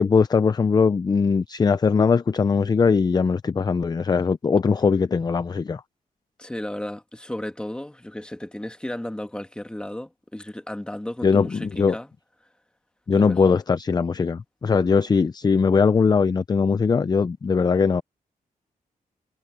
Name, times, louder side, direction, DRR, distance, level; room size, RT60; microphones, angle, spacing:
voice 1, 0.0-5.8 11.2-12.0 13.1-18.0, left 5 dB, 30° left, 0.5 m, -20 dB
voice 2, 6.4-12.1 13.1-13.6, left 1 dB, 5° left, 1.8 m, -34 dB
wide cardioid pair, 140°, 15 cm